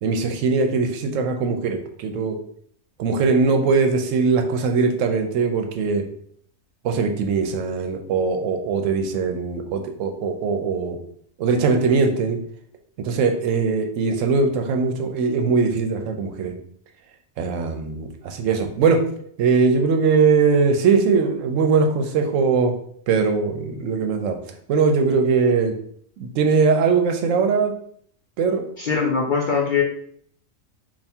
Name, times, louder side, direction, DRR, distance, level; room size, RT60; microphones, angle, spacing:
voice 1, 0.0-2.4 3.0-6.0 6.8-11.0 11.4-12.4 13.0-16.5 17.4-19.0 19.4-22.7 23.1-24.4 24.7-25.7 26.2-27.7 28.4-28.6, right 4 dB, 75° right, 5 dB, 0.9 m, -20 dB
voice 2, 28.8-29.8, left 5 dB, 60° left, -1 dB, 0.5 m, -21 dB
3.4 x 2.5 x 4.2 m, 0.63 s
omnidirectional pair, 1.4 m